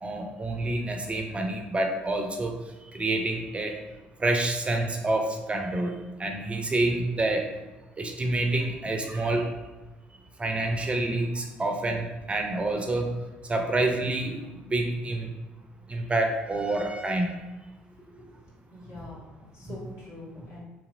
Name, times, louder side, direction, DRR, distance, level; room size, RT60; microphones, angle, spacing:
voice 1, 0.0-2.6 2.9-3.8 4.2-7.5 8.0-9.5 10.4-13.1 13.4-15.3 15.9-17.4 19.6-19.8, right 2 dB, 25° right, 3 dB, 0.4 m, -28 dB
voice 2, 17.9-18.3 18.7-20.6, left 1 dB, 60° left, -8 dB, 1.4 m, -45 dB
2.9 x 2.8 x 2.4 m, 1.2 s
figure-of-eight pair, 55°, 5 cm